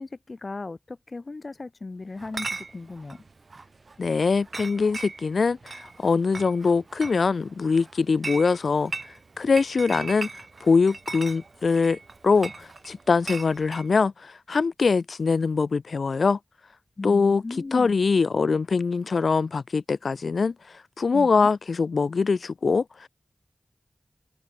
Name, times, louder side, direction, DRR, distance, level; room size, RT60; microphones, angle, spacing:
voice 1, 0.0-3.2 17.0-18.0 21.1-21.5, left 3 dB, 55° left, 4.0 m, -37 dB
Chatter / Chink clink, 2.2-13.9, right 3 dB, 60° right, 2.4 m, -39 dB
voice 2, 4.0-12.0 12.2-16.4 17.0-17.4 17.7-23.1, left 4 dB, 85° left, 2.4 m, -23 dB
wide cardioid pair, 70°, 0 cm